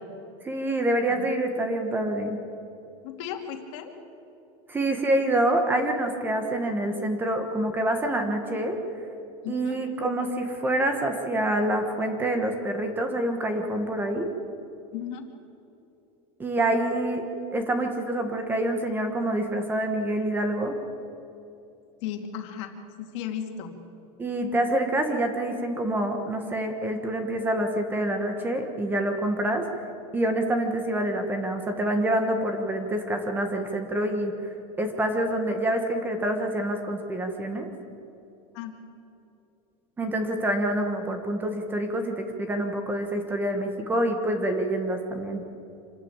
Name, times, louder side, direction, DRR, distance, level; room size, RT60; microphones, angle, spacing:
voice 1, 0.4-2.4 4.7-8.8 9.5-14.3 16.4-17.2 17.5-20.8 24.2-29.6 30.1-34.5 34.8-37.7 40.0-45.4, right 1 dB, 10° right, 5 dB, 1.3 m, -26 dB
voice 2, 3.0-3.9 9.4-9.8 14.9-15.3 22.0-23.7 38.5-38.7, left 9 dB, 60° left, 4 dB, 2.4 m, -35 dB
26.0 x 13.0 x 8.8 m, 2.8 s
supercardioid pair, 175°, 17 cm